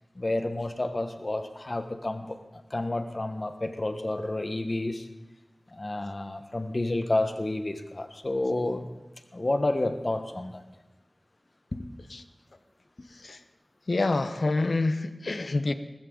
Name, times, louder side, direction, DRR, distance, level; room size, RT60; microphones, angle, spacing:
voice 1, 0.1-2.4 2.7-5.1 5.7-8.9 9.3-10.6 11.7-11.8, left 2 dB, 50° left, 8 dB, 1.2 m, -30 dB
voice 2, 13.9-15.7, left 2 dB, 80° left, 10 dB, 0.8 m, -27 dB
19.5 x 15.0 x 3.9 m, 1.0 s
wide cardioid pair, 45°, 0 cm